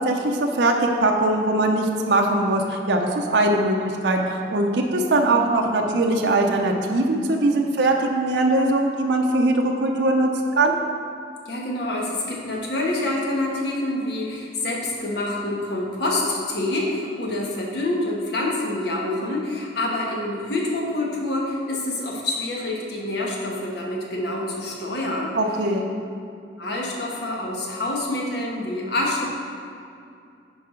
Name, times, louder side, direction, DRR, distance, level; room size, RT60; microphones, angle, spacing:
voice 1, 0.0-10.3 10.6-10.7 25.3-25.8, right 2 dB, 80° right, 1 dB, 0.6 m, -21 dB
voice 2, 11.4-25.4 26.6-29.2, left 2 dB, 65° left, -2 dB, 1.3 m, -27 dB
9.9 x 4.7 x 3.8 m, 2.5 s
head